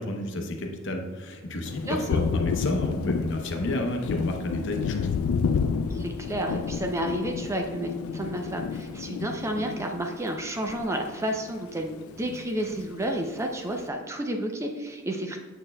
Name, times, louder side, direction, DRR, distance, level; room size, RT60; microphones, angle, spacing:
voice 1, 0.0-5.2, left 1 dB, 60° left, 3 dB, 0.8 m, -31 dB
Thunder, 1.6-11.4 11.7-12.9, left 5 dB, 75° left, 0.3 m, -31 dB
voice 2, 1.9-2.2 5.9-15.4, right 1 dB, 15° right, 3 dB, 0.4 m, -31 dB
7.2 x 6.4 x 2.2 m, 1.4 s
head